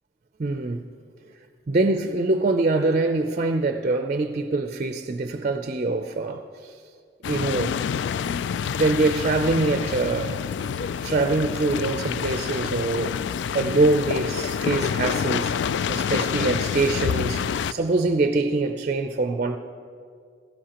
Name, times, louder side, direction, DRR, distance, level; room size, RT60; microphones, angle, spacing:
voice 1, 0.4-0.8 1.7-6.7 7.3-7.8 8.6-10.4 10.8-13.2 13.5-19.6, right 3 dB, 40° right, 0.5 m, -24 dB
sound 1, 7.2-17.7, left 7 dB, 80° left, 0.3 m, -27 dB
17.0 x 16.0 x 2.9 m
head